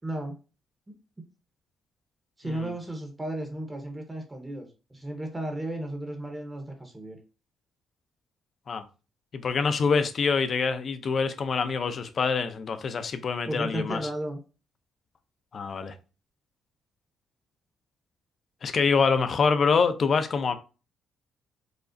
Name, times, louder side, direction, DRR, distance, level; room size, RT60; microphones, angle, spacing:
voice 1, 0.0-0.4 0.9-1.0 2.4-7.2 13.5-14.4, right 1 dB, 15° right, 0.7 m, -34 dB
voice 2, 9.3-14.0 15.5-15.9 18.6-20.5, left 5 dB, 50° left, 0.5 m, -25 dB
4.9 x 2.0 x 2.5 m
cardioid pair, 90°, 0 cm